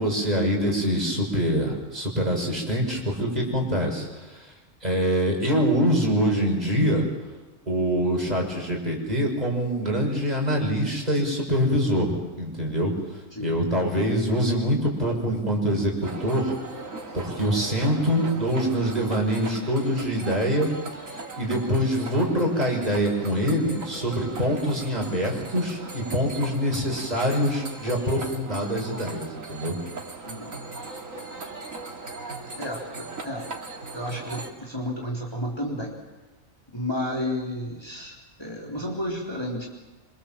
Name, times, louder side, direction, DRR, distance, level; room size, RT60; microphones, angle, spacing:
voice 1, 0.0-4.4 4.8-7.1 7.7-12.9 13.4-16.6 17.1-20.7 21.1-29.7, equal, 30° right, 0 dB, 6.5 m, -24 dB
sound 1, 16.0-34.5, right 3 dB, 85° right, 2.8 m, -38 dB
voice 2, 32.6-33.5 33.9-35.9 36.7-39.7, left 1 dB, 20° left, -2 dB, 3.8 m, -32 dB
26.5 x 26.0 x 7.5 m, 1.2 s
omnidirectional pair, 1.4 m